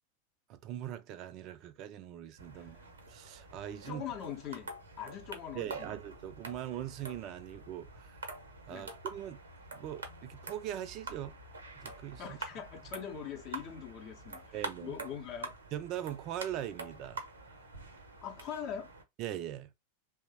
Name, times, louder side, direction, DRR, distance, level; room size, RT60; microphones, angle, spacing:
voice 1, 0.5-4.0 5.5-8.2 8.7-9.4 9.7-11.4 11.8-12.4 14.5-14.9 15.7-17.2 19.2-19.7, right 11 dB, 40° right, 0.4 m, -41 dB
sound 1, 2.4-19.0, right 3 dB, 70° right, 0.7 m, -47 dB
voice 2, 2.5-2.8 3.9-6.0 8.7-8.9 12.2-15.6 18.2-18.9, left 8 dB, 35° left, 0.6 m, -42 dB
3.0 x 2.0 x 2.7 m
figure-of-eight pair, 90°, 0 cm